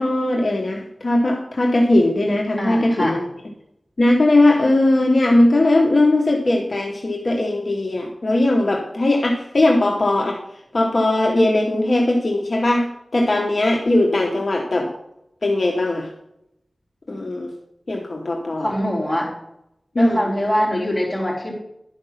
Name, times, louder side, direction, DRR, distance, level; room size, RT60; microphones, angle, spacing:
voice 1, 0.0-3.2 4.0-10.4 10.7-14.9 15.4-16.1 17.1-17.5 17.9-18.7 19.9-20.2, left 1 dB, 55° left, 0 dB, 1.1 m, -19 dB
voice 2, 2.6-3.2 18.6-19.3 20.0-21.5, equal, 15° left, -5 dB, 3.8 m, -23 dB
11.0 x 5.2 x 5.7 m, 0.81 s
wide cardioid pair, 70°, 0 cm